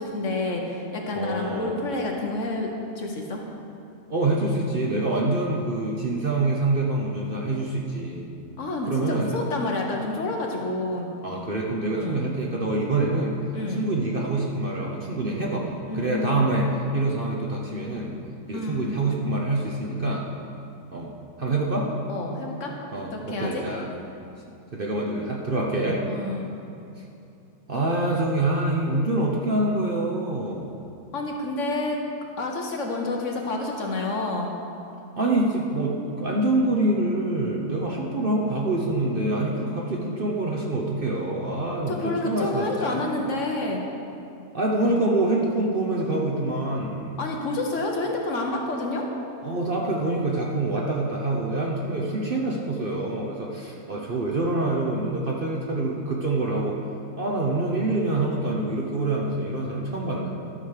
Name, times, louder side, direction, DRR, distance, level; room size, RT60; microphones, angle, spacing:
voice 1, 0.0-2.7 3.0-3.4 8.6-11.1 11.9-12.3 13.5-13.9 15.9-16.5 18.5-19.0 22.1-23.6 23.9-24.1 26.1-26.5 31.1-32.0 32.4-34.5 41.9-43.8 47.2-49.1, left 2 dB, 55° left, 1 dB, 1.3 m, -29 dB
voice 2, 1.1-1.8 4.1-8.2 8.8-9.4 11.2-13.4 13.7-18.1 18.5-20.3 20.9-21.9 22.9-23.9 24.7-26.1 27.0-27.1 27.7-30.7 35.2-43.0 44.5-47.2 49.4-56.8 57.2-60.3, right 2 dB, 40° right, -2 dB, 0.9 m, -26 dB
12.5 x 5.2 x 6.5 m, 2.7 s
omnidirectional pair, 1.7 m